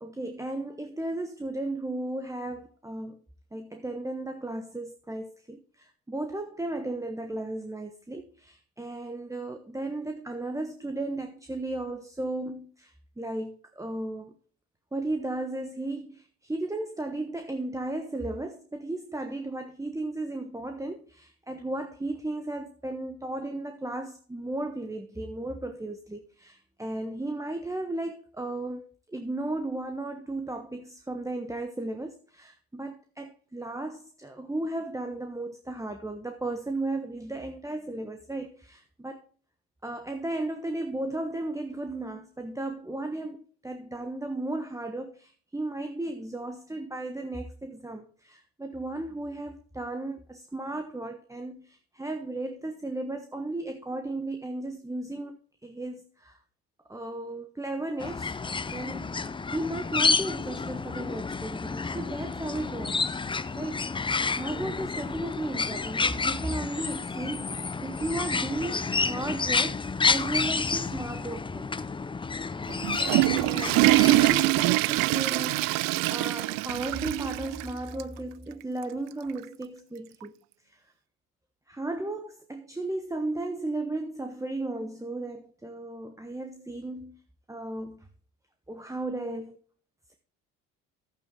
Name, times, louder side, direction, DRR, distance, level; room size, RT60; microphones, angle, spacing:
voice 1, 0.0-3.2 3.5-14.3 14.9-39.2 39.8-43.4 43.6-56.4 56.9-58.3 58.7-59.2 59.5-63.1 63.6-71.7 72.9-80.3 80.6-80.8 81.7-87.2 87.5-88.1 88.7-89.6, right 2 dB, 10° right, 1.2 m, -35 dB
sound 1, 58.0-74.4, left 4 dB, 15° left, 0.5 m, -30 dB
Water / Toilet flush, 72.7-77.7 78.0-78.1 78.8-78.9 80.2-80.3, right 20 dB, 60° right, 0.5 m, -24 dB
11.5 x 8.8 x 3.8 m
hypercardioid pair, 70°, 38 cm